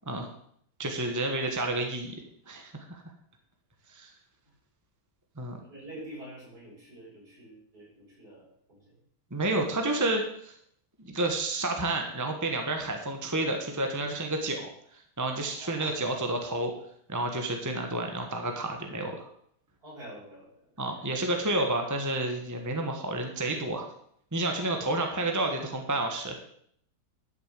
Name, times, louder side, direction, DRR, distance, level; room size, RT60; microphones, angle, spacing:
voice 1, 0.8-3.0 3.9-4.1 5.4-5.6 9.3-10.5 11.0-16.7 17.1-19.3 20.8-23.9 24.3-26.4, right 2 dB, 10° right, 3 dB, 1.3 m, -30 dB
voice 2, 5.7-9.0 15.4-15.9 19.8-20.6 21.0-21.2 24.4-24.7, right 1 dB, 65° right, -5 dB, 7.5 m, -47 dB
12.0 x 6.9 x 7.6 m, 0.67 s
omnidirectional pair, 1.8 m